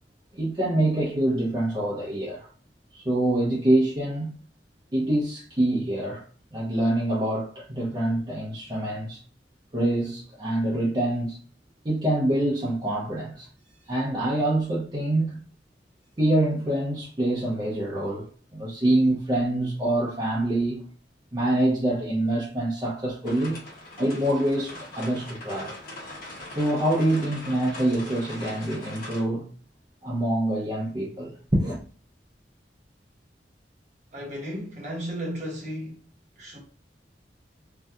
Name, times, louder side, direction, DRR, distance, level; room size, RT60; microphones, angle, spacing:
voice 1, 0.3-2.5 2.9-4.4 4.9-6.2 6.5-9.2 9.7-11.4 11.8-13.5 13.9-15.4 16.2-20.8 21.3-23.6 24.0-25.7 26.6-29.5 30.0-31.8, right 1 dB, 25° right, 0.7 m, -25 dB
sound 1, 23.2-29.2, left 1 dB, 55° left, 1.1 m, -41 dB
voice 2, 34.1-36.0 36.4-36.6, equal, 45° right, 1.1 m, -34 dB
2.7 x 2.3 x 3.5 m
head